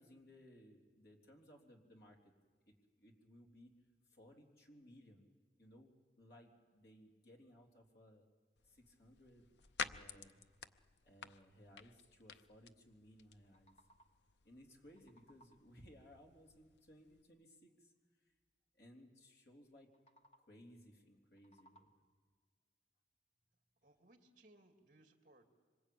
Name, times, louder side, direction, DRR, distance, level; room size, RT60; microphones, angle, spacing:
voice 1, 0.0-2.3 2.7-3.7 4.1-5.3 5.6-8.3 8.7-9.5 9.8-10.4 11.0-13.7 14.4-17.9 18.8-19.9 20.4-21.9, equal, 65° left, 2 dB, 3.6 m, -62 dB
sound 1, 8.6-17.2, left 6 dB, 85° left, 0.7 m, -52 dB
sound 2, 13.2-14.4 14.7-15.8 19.8-20.7 21.2-22.3, right 1 dB, 35° left, 1.3 m, -70 dB
voice 2, 23.5-25.5, right 1 dB, 50° right, 4 dB, 2.7 m, -67 dB
26.5 x 25.0 x 8.7 m, 1.5 s
head